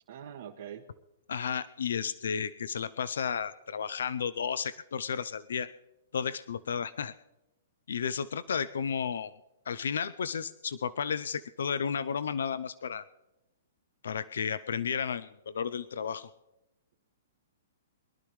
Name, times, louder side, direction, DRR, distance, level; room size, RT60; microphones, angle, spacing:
voice 1, 0.1-0.8, right 9 dB, 60° right, 0 dB, 1.5 m, -43 dB
voice 2, 1.3-5.7 6.1-7.1 7.9-9.3 9.7-13.0 14.0-16.3, left 7 dB, 85° left, 15 dB, 0.5 m, -33 dB
23.0 x 11.5 x 3.2 m, 0.95 s
hypercardioid pair, 165°, 0 cm